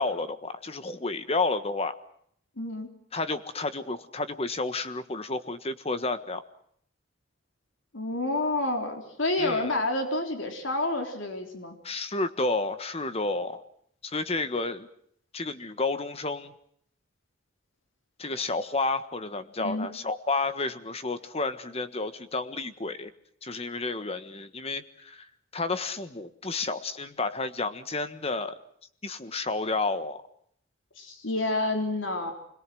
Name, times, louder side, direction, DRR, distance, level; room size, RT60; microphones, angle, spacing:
voice 1, 0.0-1.9 3.1-6.4 9.4-9.8 11.8-13.6 14.0-14.9 15.3-16.5 18.2-23.1 23.4-25.2 25.5-28.6 29.0-30.2, left 3 dB, 30° left, 11 dB, 1.4 m, -31 dB
voice 2, 2.6-2.9 7.9-11.8 19.6-19.9 31.0-32.3, left 2 dB, 80° left, 4 dB, 3.8 m, -29 dB
26.0 x 21.5 x 7.8 m, 0.67 s
head